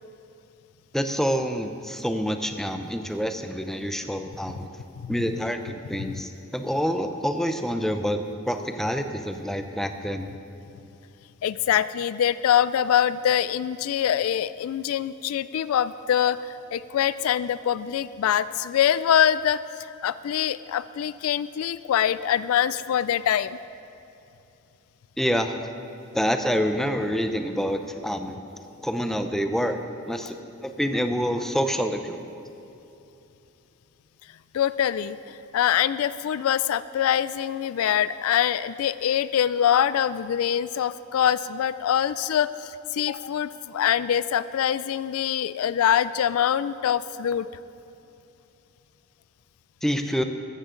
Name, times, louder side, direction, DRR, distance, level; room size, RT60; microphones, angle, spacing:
voice 1, 0.9-4.7 5.1-8.2 8.5-10.3 25.2-25.7 26.1-28.4 28.8-29.8 30.1-30.3 30.6-32.2 49.8-50.2, equal, ahead, 6 dB, 0.6 m, -27 dB
voice 2, 11.4-19.6 20.0-23.6 34.5-35.2 35.5-47.5, left 9 dB, 80° left, 15 dB, 0.3 m, -24 dB
14.0 x 13.5 x 3.8 m, 2.9 s
head